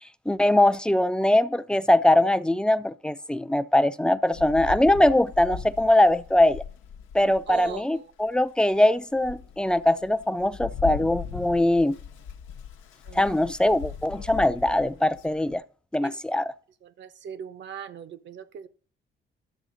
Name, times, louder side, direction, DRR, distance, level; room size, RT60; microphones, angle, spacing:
voice 1, 0.3-6.6 7.1-12.0 13.1-15.6 15.9-16.5, left 1 dB, 5° left, 0.5 m, -22 dB
Rain, 4.3-7.8 8.4-8.5 9.0-15.6, left 7 dB, 85° left, 0.9 m, -39 dB
voice 2, 7.2-8.0 13.1-13.2 16.0-16.2 16.8-18.7, right 8 dB, 65° right, 0.9 m, -40 dB
11.0 x 7.1 x 3.9 m
cardioid pair, 90°, 20 cm